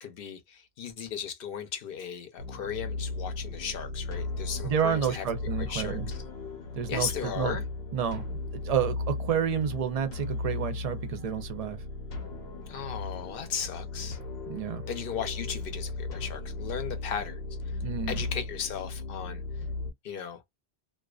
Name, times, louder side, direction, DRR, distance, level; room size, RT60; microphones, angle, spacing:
voice 1, 0.0-5.2 5.6-6.0 6.9-7.7 12.7-14.2 14.9-17.4 18.1-19.4 20.0-20.4, left 7 dB, 65° left, 0.8 m, -36 dB
sound 1, 2.4-19.9, left 3 dB, 85° left, 1.0 m, -36 dB
voice 2, 4.6-6.1 6.7-7.6 7.9-11.8 14.5-14.8 17.8-18.2, right 8 dB, 50° right, 0.5 m, -30 dB
2.3 x 2.3 x 2.3 m
omnidirectional pair, 1.0 m